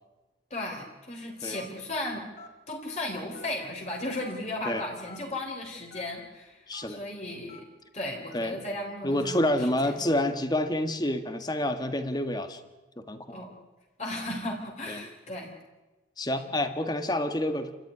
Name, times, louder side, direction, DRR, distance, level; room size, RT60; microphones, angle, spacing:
voice 1, 0.5-2.3 2.7-7.7 7.9-10.1 13.3-13.5 14.0-15.5, left 1 dB, 35° left, 0 dB, 4.0 m, -35 dB
Telephone, 1.5-1.8 2.4-2.5 3.3-3.7 4.2-4.3 5.0-5.2 5.9-6.0 6.7-6.8 7.5-7.6 8.3-8.5 9.2-9.4, left 2 dB, 55° left, 4.8 m, -48 dB
voice 2, 6.7-7.0 8.3-8.6 9.0-12.6 13.0-13.4 14.9-15.0 16.2-17.7, left 1 dB, 20° left, 8 dB, 1.6 m, -28 dB
29.0 x 14.0 x 9.8 m, 1.2 s
head